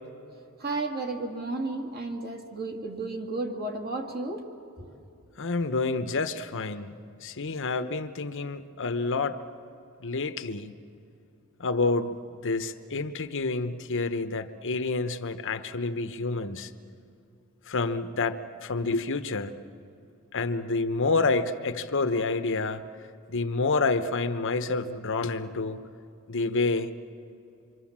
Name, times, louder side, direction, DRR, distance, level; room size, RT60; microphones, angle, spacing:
voice 1, 0.6-4.4 4.8-4.9, right 2 dB, 45° right, 2 dB, 2.4 m, -33 dB
voice 2, 5.4-6.9 7.2-9.4 10.0-10.7 11.6-12.2 12.4-16.7 17.7-19.6 20.3-22.8 23.3-25.8 26.3-26.9, left 3 dB, 60° left, 10 dB, 1.0 m, -28 dB
27.0 x 24.5 x 7.4 m, 2.7 s
head